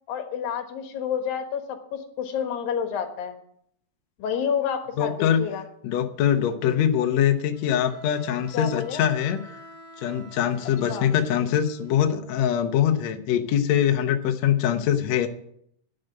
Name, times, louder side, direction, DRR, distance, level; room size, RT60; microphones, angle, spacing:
voice 1, 0.1-3.4 4.2-5.6 8.5-9.1 10.9-11.1, left 8 dB, 90° left, 6 dB, 3.2 m, -29 dB
voice 2, 5.0-5.4 5.8-9.4 10.0-15.3, left 9 dB, 65° left, 6 dB, 1.9 m, -23 dB
Bowed string instrument, 7.5-12.5, equal, 20° right, 2.5 m, -49 dB
11.5 x 6.7 x 9.0 m, 0.68 s
omnidirectional pair, 4.0 m